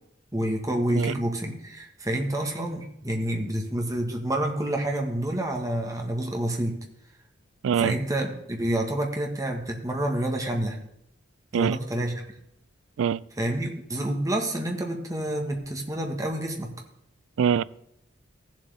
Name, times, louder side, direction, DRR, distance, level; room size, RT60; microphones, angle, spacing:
voice 1, 0.3-6.8 7.8-10.8 11.5-12.2 13.4-16.7, right 1 dB, 20° right, 1.6 m, -28 dB
voice 2, 1.0-1.1 7.6-7.9 11.5-11.8 13.0-13.2 17.4-17.6, right 8 dB, 90° right, 0.3 m, -23 dB
15.5 x 7.6 x 3.5 m
head